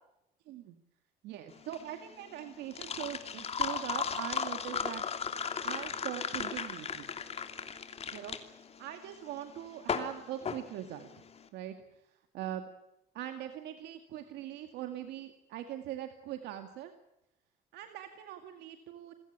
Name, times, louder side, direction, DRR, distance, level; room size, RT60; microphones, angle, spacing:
voice 1, 1.2-5.0 5.6-7.1 8.1-8.4 8.8-11.1 11.5-11.7 12.3-12.7 13.1-16.9 17.7-19.1, right 11 dB, 85° right, 7 dB, 2.2 m, -41 dB
sound 1, 1.5-11.4, left 6 dB, 35° left, 3.0 m, -36 dB
27.5 x 16.5 x 8.7 m, 0.85 s
cardioid pair, 110°, 17 cm